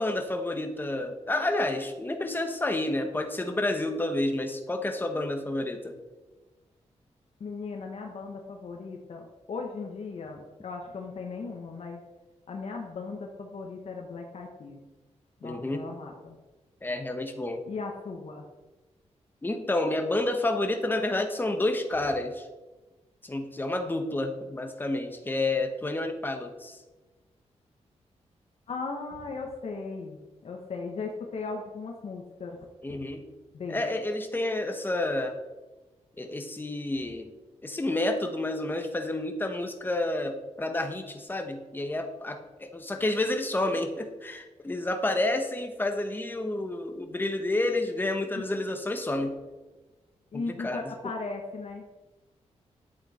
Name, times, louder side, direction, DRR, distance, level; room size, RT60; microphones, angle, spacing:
voice 1, 0.0-6.0 15.4-15.8 16.8-17.6 19.4-22.5 23.2-26.8 32.8-33.2 33.7-35.4 36.2-37.3 37.6-49.4 50.3-50.9, left 2 dB, 15° left, 5 dB, 1.2 m, -30 dB
voice 2, 7.4-12.0 12.5-14.8 15.4-16.3 17.7-18.4 28.7-33.1 33.5-33.8 48.3-48.5 49.1-49.3 50.3-51.8, left 4 dB, 60° left, 1 dB, 1.3 m, -37 dB
11.5 x 8.0 x 4.3 m, 1.2 s
wide cardioid pair, 135°, 12 cm